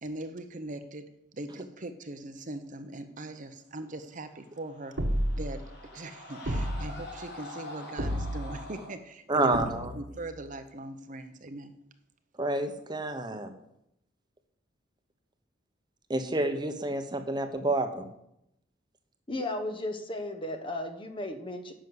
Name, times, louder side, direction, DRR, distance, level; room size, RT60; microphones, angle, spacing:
voice 1, 0.0-5.0 5.3-9.5 9.9-11.7, right 2 dB, 45° right, 8 dB, 0.8 m, -41 dB
sound 1, 4.5-8.9, left 1 dB, 60° left, 4.0 m, -45 dB
sound 2, 5.0-5.6 6.4-7.0 8.0-8.6 9.5-10.1, equal, 70° right, 1.5 m, -31 dB
voice 2, 9.3-9.9 12.4-13.5 16.1-18.1, right 2 dB, 25° right, 7 dB, 1.0 m, -29 dB
voice 3, 19.3-21.7, left 1 dB, 25° left, 6 dB, 1.1 m, -35 dB
10.5 x 6.3 x 8.0 m, 0.80 s
head